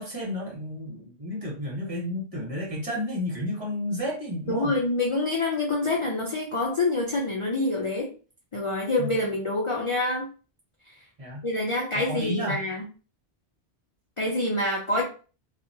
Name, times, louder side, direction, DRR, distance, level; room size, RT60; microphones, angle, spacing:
voice 1, 0.0-4.7 9.0-9.1 11.2-11.4 11.9-12.6, left 1 dB, 35° right, -3 dB, 1.1 m, -32 dB
voice 2, 4.5-8.1 8.5-10.3 10.9-11.0 11.4-12.8 14.2-15.0, left 2 dB, 45° left, -1 dB, 0.4 m, -26 dB
2.8 x 2.4 x 2.6 m, 0.36 s
omnidirectional pair, 1.1 m